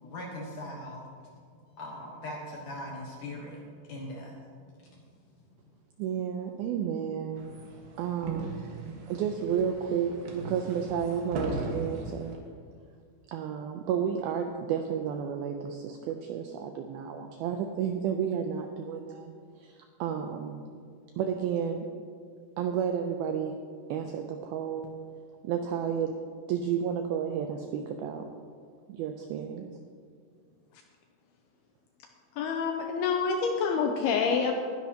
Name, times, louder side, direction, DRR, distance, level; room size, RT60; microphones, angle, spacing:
voice 1, 0.0-4.4 4.8-5.2, left 1 dB, 65° left, -1 dB, 2.1 m, -41 dB
voice 2, 6.0-7.5 8.0-8.7 9.1-12.4 13.3-20.6 21.2-21.9 22.6-23.6 23.9-24.9 25.4-26.2 26.5-28.3 28.9-29.7, right 8 dB, 90° right, 4 dB, 2.1 m, -32 dB
sound 1, 7.3-12.4, right 2 dB, 65° right, 2.8 m, -38 dB
voice 3, 32.4-34.5, left 5 dB, 80° left, 3 dB, 2.3 m, -27 dB
20.0 x 10.5 x 2.9 m, 2.1 s
omnidirectional pair, 5.1 m